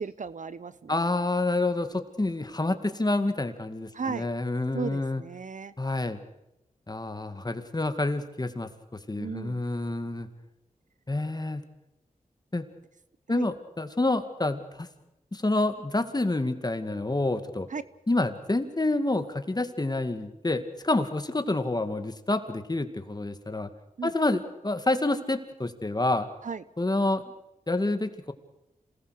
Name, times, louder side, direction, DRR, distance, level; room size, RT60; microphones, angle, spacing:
voice 1, 0.0-1.0 3.9-4.3 4.7-5.7 9.2-9.6 13.3-13.5 17.7-17.8 24.0-24.1 26.4-26.6, right 5 dB, 65° right, 16 dB, 0.8 m, -35 dB
voice 2, 0.9-5.2 5.8-6.2 6.9-8.7 9.1-10.3 11.1-11.6 12.5-12.7 13.3-14.9 15.3-17.7 18.1-23.7 24.0-26.3 26.8-27.2 27.7-28.3, left 2 dB, 30° left, 8 dB, 2.1 m, -28 dB
27.0 x 19.0 x 6.6 m, 0.91 s
cardioid pair, 55°, 14 cm